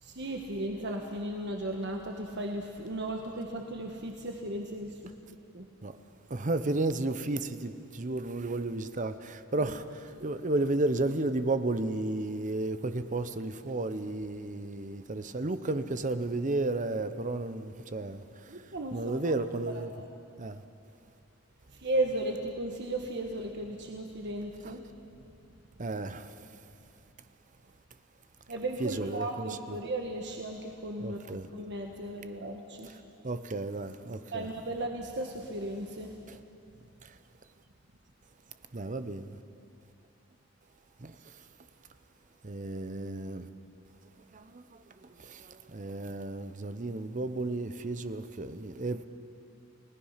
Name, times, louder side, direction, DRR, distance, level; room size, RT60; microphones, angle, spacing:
voice 1, 0.0-4.9 5.5-5.7 9.6-9.7 18.5-19.3 19.7-20.0 21.7-24.8 28.5-31.2 31.5-32.9 34.3-36.2, right 1 dB, 60° right, 1.4 m, -35 dB
voice 2, 6.3-18.5 18.9-19.9 20.4-20.6 24.6-24.7 25.8-26.3 28.8-29.8 31.0-31.5 32.8-32.9 33.2-34.5 36.3-36.4 38.7-39.4 41.0-41.1 42.4-43.5 44.3-44.8 45.2-49.0, right 2 dB, 40° right, 0.8 m, -33 dB
30.0 x 18.0 x 5.8 m
head